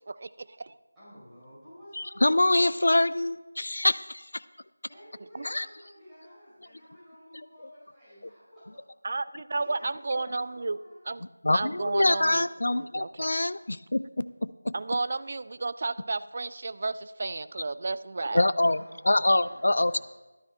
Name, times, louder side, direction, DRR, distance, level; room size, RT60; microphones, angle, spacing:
voice 1, 0.1-0.8 5.3-5.4 9.0-10.8 11.1-11.2 11.5-12.5 12.7-13.3 14.7-18.5, right 3 dB, 35° right, 15 dB, 0.3 m, -32 dB
voice 2, 0.9-2.7 4.9-8.8 9.6-11.1 18.6-20.0, equal, 5° right, -14 dB, 4.1 m, -52 dB
voice 3, 2.0-4.4 5.5-5.7 11.4-14.7 18.3-18.8 19.0-20.0, left 1 dB, 55° left, 15 dB, 0.3 m, -25 dB
13.5 x 12.0 x 3.3 m, 1.1 s
figure-of-eight pair, 165°, 0 cm